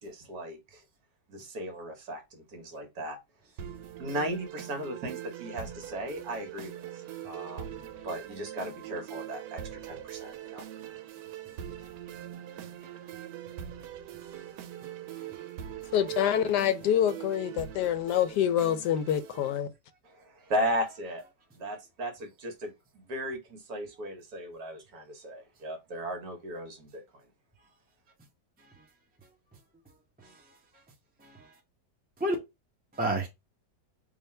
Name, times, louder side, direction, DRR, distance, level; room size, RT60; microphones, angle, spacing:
voice 1, 0.0-0.8 1.3-3.2 4.0-6.8 7.2-10.7 20.0-21.2 21.5-22.7 23.1-27.0, equal, 60° right, 1.6 m, -36 dB
sound 1, 3.6-19.6, right 11 dB, 85° right, 1.2 m, -42 dB
voice 2, 15.9-19.7, left 10 dB, 75° left, 1.1 m, -26 dB
voice 3, 32.9-33.3, right 1 dB, 10° right, 0.4 m, -32 dB
3.6 x 2.5 x 4.2 m
omnidirectional pair, 1.8 m